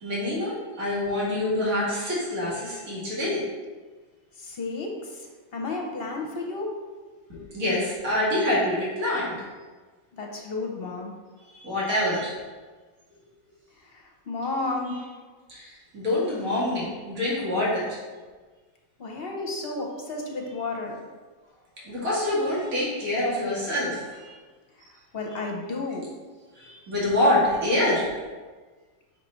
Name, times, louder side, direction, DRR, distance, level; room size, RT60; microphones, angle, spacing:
voice 1, 0.0-3.4 7.3-9.5 11.6-12.3 15.5-17.9 21.8-24.4 26.5-28.1, left 1 dB, 65° right, -7 dB, 2.3 m, -26 dB
voice 2, 4.4-5.3 5.5-6.7 10.2-11.1 13.9-15.0 19.0-21.0 25.1-26.1, left 3 dB, 50° left, 0 dB, 0.9 m, -32 dB
5.9 x 4.2 x 4.3 m, 1.4 s
omnidirectional pair, 1.6 m